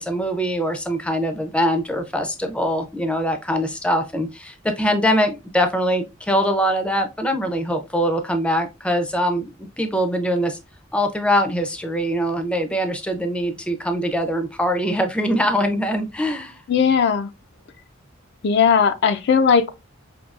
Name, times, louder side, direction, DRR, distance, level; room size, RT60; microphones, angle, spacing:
voice 1, 0.0-10.6 10.9-16.6, equal, 5° left, 0.5 m, -23 dB
voice 2, 16.7-17.3 18.4-19.7, left 6 dB, 55° left, 0.4 m, -17 dB
5.2 x 2.8 x 2.4 m
head